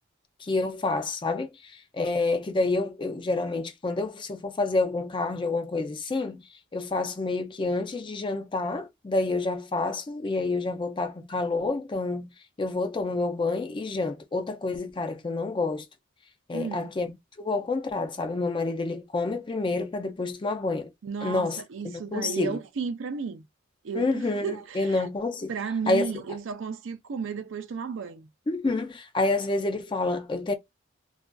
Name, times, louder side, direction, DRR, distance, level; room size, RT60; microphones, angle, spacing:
voice 1, 0.4-15.9 16.5-17.1 17.4-20.9 21.2-22.6 23.9-25.5 25.9-26.1 28.5-30.5, left 3 dB, 25° left, 0.4 m, -28 dB
voice 2, 16.5-17.0 21.0-23.5 23.8-25.1 25.5-28.3, right 5 dB, 70° right, 0.4 m, -33 dB
2.4 x 2.4 x 2.2 m
head